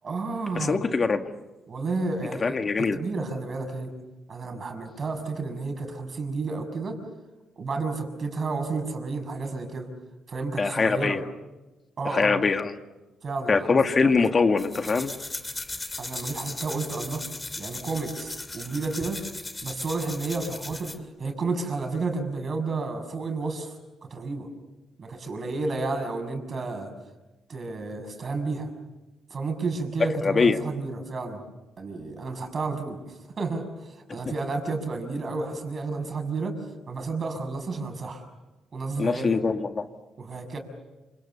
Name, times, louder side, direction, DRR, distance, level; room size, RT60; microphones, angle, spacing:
voice 1, 0.0-0.9 1.7-3.9 4.3-7.0 7.6-9.9 10.3-11.2 12.0-12.4 13.2-14.1 16.0-17.2 17.5-19.2 19.6-24.5 25.0-26.9 27.5-28.7 29.3-31.4 31.8-36.6 36.9-38.2 38.7-39.4 40.2-40.6, right 3 dB, 40° right, 6 dB, 6.5 m, -31 dB
voice 2, 0.5-1.3 2.4-3.0 10.6-11.2 12.1-12.7 13.5-15.1 30.2-30.6 39.0-39.9, left 4 dB, 35° left, 7 dB, 1.9 m, -23 dB
sound 1, 14.6-21.0, left 2 dB, 20° left, 2.7 m, -37 dB
28.5 x 27.5 x 7.0 m, 1.1 s
cardioid pair, 90°, 0 cm